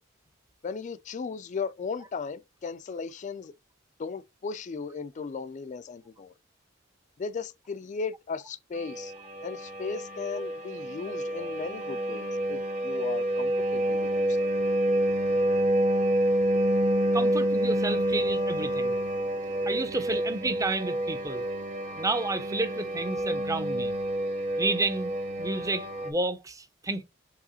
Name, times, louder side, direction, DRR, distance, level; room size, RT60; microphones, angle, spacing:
voice 1, 0.6-3.5 4.0-6.3 7.2-9.1 9.4-14.5, left 5 dB, 40° left, 0.4 m, -36 dB
sound 1, 8.8-26.1, right 1 dB, 40° right, 0.9 m, -28 dB
voice 2, 17.1-19.0 19.7-21.4 22.0-23.9 24.6-25.1 25.4-27.0, right 2 dB, 15° right, 0.5 m, -31 dB
4.8 x 3.4 x 2.8 m
head